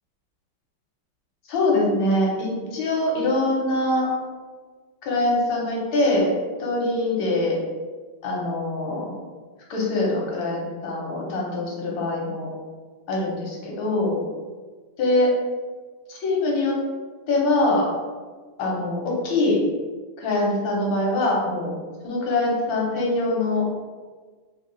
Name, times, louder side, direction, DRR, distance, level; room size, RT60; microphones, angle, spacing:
voice 1, 1.5-4.1 5.0-6.3 6.6-7.6 8.2-9.1 9.7-12.5 13.1-14.2 15.0-15.3 16.1-16.8 17.3-17.9 18.6-19.6 20.2-21.7 22.0-23.6, left 2 dB, 70° left, -3 dB, 1.5 m, -23 dB
3.5 x 2.3 x 3.8 m, 1.4 s
omnidirectional pair, 2.4 m